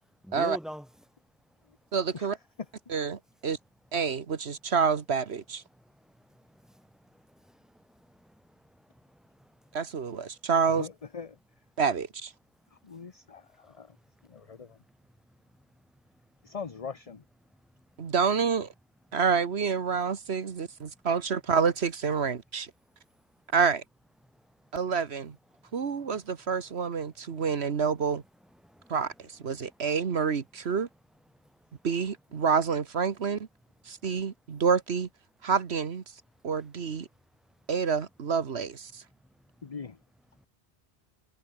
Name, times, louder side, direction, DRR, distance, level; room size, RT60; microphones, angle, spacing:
voice 1, 0.2-0.9 5.7-9.6 13.6-13.7 15.6-15.7 17.7-17.8 24.3-24.7 25.5-26.1 27.3-27.4 28.6-29.0 31.4-31.5 39.6-39.7, equal, ahead, 5.0 m, -47 dB
voice 2, 1.9-2.4 2.9-3.6 3.9-5.6 9.7-10.9 11.8-12.3 18.0-18.7 19.1-22.7 23.5-23.8 24.7-25.3 25.7-28.2 28.9-30.9 31.8-33.5 33.9-35.1 35.4-36.0 36.4-37.1 37.7-39.0, right 6 dB, 75° right, 1.5 m, -28 dB
voice 3, 10.8-11.3 12.8-13.9 14.3-14.7 16.4-17.2 39.6-40.0, left 5 dB, 35° left, 1.0 m, -41 dB
omnidirectional pair, 1.1 m